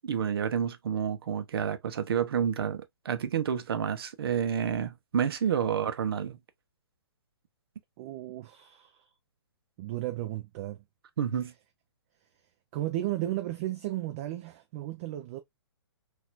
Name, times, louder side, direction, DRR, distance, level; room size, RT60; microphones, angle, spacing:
voice 1, 0.0-6.4 11.2-11.5, right 8 dB, 60° right, 0.8 m, -29 dB
voice 2, 8.0-9.1 9.8-10.8 12.7-15.4, right 15 dB, 35° right, 0.5 m, -34 dB
4.1 x 2.6 x 2.5 m
hypercardioid pair, 135°, 14 cm